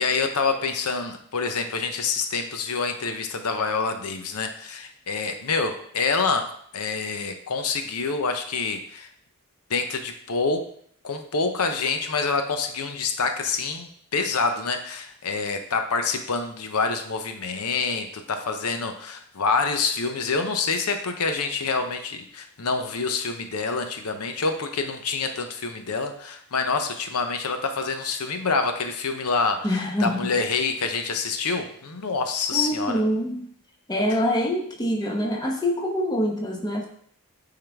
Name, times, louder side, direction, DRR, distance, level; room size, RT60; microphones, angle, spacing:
voice 1, 0.0-9.1 9.7-10.7 11.0-33.0, left 4 dB, 80° left, 6 dB, 0.7 m, -27 dB
voice 2, 29.6-30.4 32.5-33.4 33.9-36.9, equal, 20° left, 1 dB, 0.9 m, -25 dB
8.8 x 3.8 x 3.5 m, 0.63 s
head